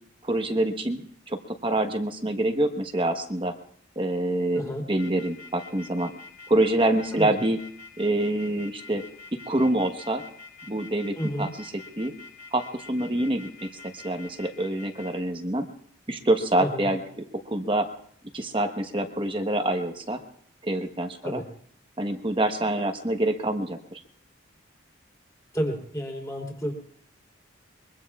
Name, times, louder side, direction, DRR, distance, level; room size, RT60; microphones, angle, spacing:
voice 1, 0.2-3.5 4.0-6.1 6.5-7.6 8.0-9.0 9.3-10.2 10.7-12.1 12.5-15.7 16.1-17.9 18.3-20.2 20.6-21.4 22.0-24.0, right 1 dB, 25° right, 5 dB, 1.1 m, -26 dB
voice 2, 4.5-4.8 7.1-7.3 11.2-11.5 16.6-16.9 21.2-21.4 25.5-26.7, equal, 15° left, 0 dB, 3.3 m, -30 dB
sound 1, 5.0-15.1, left 4 dB, 55° left, 6.4 m, -45 dB
23.5 x 23.5 x 2.4 m, 0.64 s
head